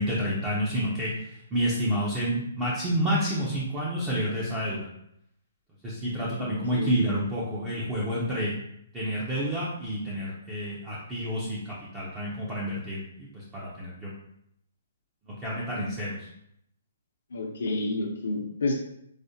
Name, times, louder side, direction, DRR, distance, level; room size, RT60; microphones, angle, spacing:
voice 1, 0.0-4.9 5.8-8.5 8.9-14.1 15.4-16.3, equal, 15° right, -6 dB, 0.5 m, -29 dB
voice 2, 17.3-18.7, left 2 dB, 85° left, -2 dB, 0.6 m, -29 dB
4.8 x 2.0 x 2.7 m, 0.73 s
hypercardioid pair, 170°, 0 cm